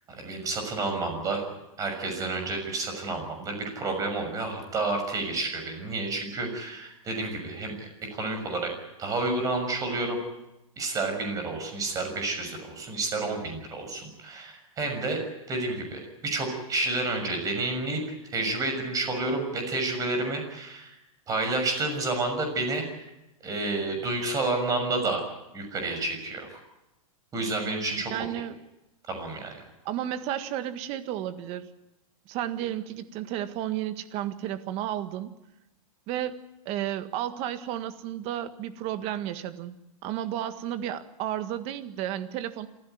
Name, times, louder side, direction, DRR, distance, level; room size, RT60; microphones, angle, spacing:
voice 1, 0.1-1.4 1.8-8.7 9.0-10.2 10.8-15.2 15.5-18.0 18.3-20.9 21.3-22.9 23.4-25.2 25.5-26.5 27.3-28.1 29.1-29.6, right 2 dB, 20° right, 5 dB, 6.5 m, -30 dB
voice 2, 28.1-28.6 29.9-31.7 32.3-35.3 36.1-39.7 40.0-42.7, right 11 dB, 35° right, 10 dB, 1.7 m, -32 dB
27.0 x 15.5 x 9.5 m, 0.95 s
hypercardioid pair, 150°, 18 cm